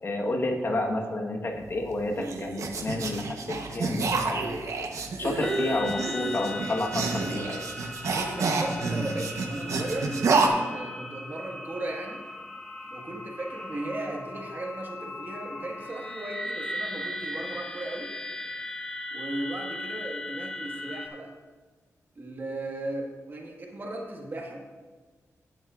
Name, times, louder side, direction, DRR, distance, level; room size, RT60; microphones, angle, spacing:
voice 1, 0.0-4.6 5.2-7.7, left 2 dB, 45° left, 2 dB, 1.3 m, -30 dB
sound 1, 1.7-10.5, right 4 dB, 65° right, 0.9 m, -29 dB
sound 2, 5.4-21.1, left 1 dB, 10° left, 0.9 m, -38 dB
voice 2, 8.1-12.2 12.8-18.1 19.1-21.4 22.1-24.6, right 1 dB, 40° right, 0 dB, 1.6 m, -36 dB
16.5 x 7.8 x 2.5 m, 1.4 s
wide cardioid pair, 105°, 6 cm